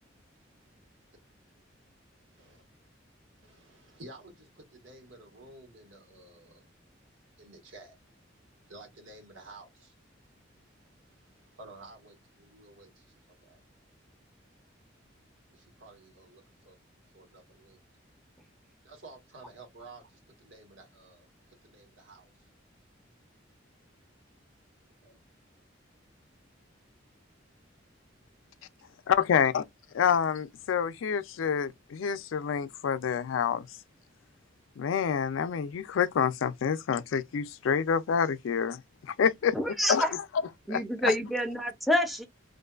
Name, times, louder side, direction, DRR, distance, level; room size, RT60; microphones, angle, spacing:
voice 1, 3.4-6.7 7.4-9.9 10.8-13.1 13.4-13.6 15.5-16.8 17.1-17.8 18.8-22.5 25.0-25.2 29.2-29.3, right 2 dB, 85° right, 1.3 m, -52 dB
voice 2, 29.1-29.6 29.9-33.7 34.8-39.6 39.9-40.1 40.7-41.1, left 7 dB, 85° left, 0.4 m, -27 dB
voice 3, 39.5-40.1 40.7-42.3, equal, ahead, 0.4 m, -28 dB
2.5 x 2.2 x 2.3 m
head